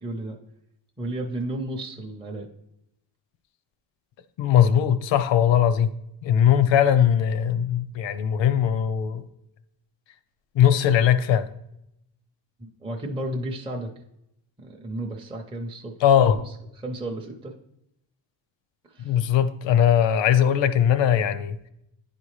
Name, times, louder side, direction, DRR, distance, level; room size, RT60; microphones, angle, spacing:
voice 1, 0.0-0.4 1.0-2.5 12.6-13.9 14.6-16.4 16.8-17.5 18.9-19.3, right 1 dB, 10° right, 0.5 m, -33 dB
voice 2, 4.4-5.9 6.2-9.2 10.5-11.5 16.0-16.4 19.0-21.5, left 9 dB, 80° left, 0.7 m, -20 dB
10.0 x 4.2 x 3.2 m
cardioid pair, 135°, 44 cm